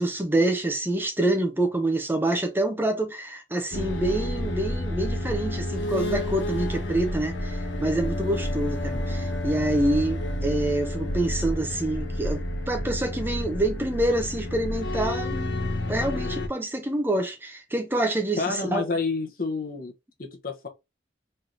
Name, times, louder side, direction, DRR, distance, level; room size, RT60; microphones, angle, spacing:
voice 1, 0.0-18.8, right 1 dB, 10° right, 0.5 m, -27 dB
sound 1, 3.7-16.5, left 1 dB, 85° left, 0.8 m, -30 dB
voice 2, 18.4-19.9 20.2-20.7, left 3 dB, 50° left, 0.8 m, -29 dB
3.2 x 2.8 x 3.8 m
head